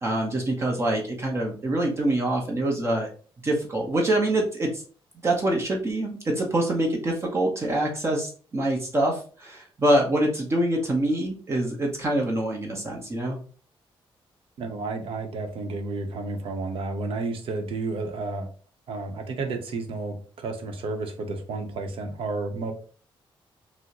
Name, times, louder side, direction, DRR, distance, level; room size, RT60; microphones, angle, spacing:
voice 1, 0.0-3.1 3.4-4.8 5.2-13.4, right 1 dB, 30° right, -1 dB, 0.9 m, -25 dB
voice 2, 14.6-18.5 18.9-22.7, right 3 dB, 70° right, 5 dB, 0.8 m, -31 dB
6.1 x 2.1 x 3.0 m, 0.40 s
cardioid pair, 145°, 10 cm